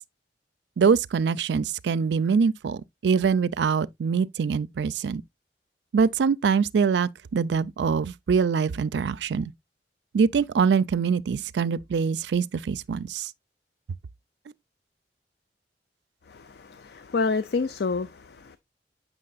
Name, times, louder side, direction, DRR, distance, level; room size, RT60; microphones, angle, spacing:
voice 1, 0.8-5.2 5.9-9.5 10.1-13.3, right 6 dB, 75° right, 0.4 m, -24 dB
voice 2, 16.3-18.6, left 4 dB, 65° left, 0.4 m, -29 dB
7.6 x 6.1 x 2.3 m
head